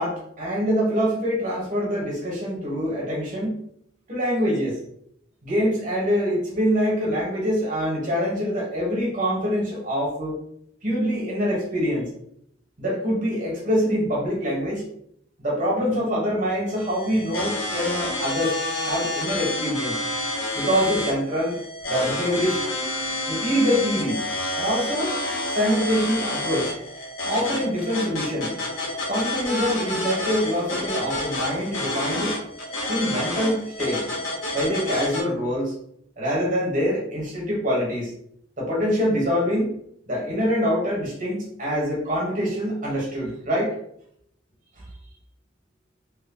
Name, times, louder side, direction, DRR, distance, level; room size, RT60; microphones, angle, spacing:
voice 1, 0.0-3.6 4.1-4.8 5.4-10.4 10.8-12.1 12.8-14.8 15.4-18.6 18.8-20.0 20.5-21.5 21.9-22.7 23.3-24.2 24.5-25.1 25.5-26.7 27.2-28.5 29.1-32.3 32.9-34.0 34.5-35.7 36.2-38.1 38.6-39.7 40.1-43.7, equal, 40° right, -3 dB, 1.4 m, -25 dB
sound 1, 16.7-35.2, left 1 dB, 90° left, 1.0 m, -29 dB
3.2 x 2.2 x 3.9 m, 0.71 s
head